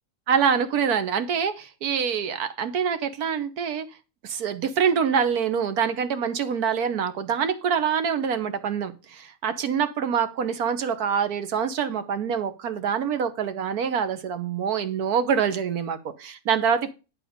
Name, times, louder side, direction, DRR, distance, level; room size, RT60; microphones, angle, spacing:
voice 1, 0.3-3.8 4.2-16.9, right 7 dB, 60° right, 1.3 m, -25 dB
10.5 x 5.0 x 5.0 m
omnidirectional pair, 1.9 m